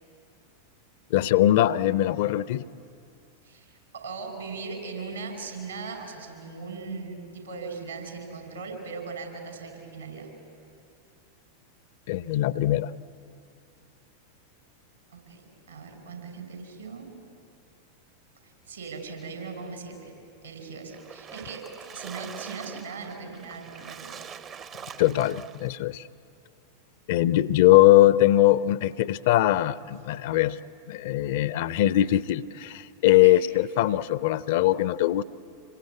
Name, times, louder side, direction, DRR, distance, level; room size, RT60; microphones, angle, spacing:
voice 1, 1.1-2.6 12.1-12.9 25.0-26.0 27.1-30.6 30.9-35.2, left 14 dB, 50° left, 18 dB, 0.6 m, -21 dB
voice 2, 3.4-10.3 15.1-17.1 18.4-20.1 20.4-24.4 33.2-33.4, right 4 dB, 75° right, 3 dB, 5.9 m, -39 dB
Splash splatter, 20.9-25.8, right 7 dB, 30° right, 0.8 m, -43 dB
26.5 x 22.5 x 8.4 m, 2.5 s
figure-of-eight pair, 90°, 0 cm